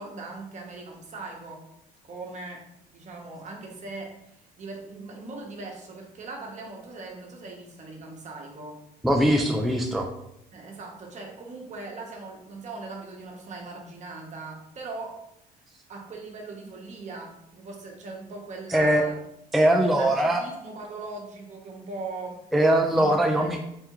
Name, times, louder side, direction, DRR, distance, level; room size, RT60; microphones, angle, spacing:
voice 1, 0.0-1.6 2.0-2.7 2.9-8.8 10.5-15.2 15.9-19.2 19.8-22.4 23.0-23.5, right 3 dB, 45° right, 1 dB, 0.9 m, -40 dB
voice 2, 9.0-10.1 18.7-19.0 19.5-20.4 22.5-23.6, right 1 dB, ahead, 1 dB, 0.3 m, -21 dB
3.5 x 3.4 x 3.0 m, 0.81 s
cardioid pair, 110°, 17 cm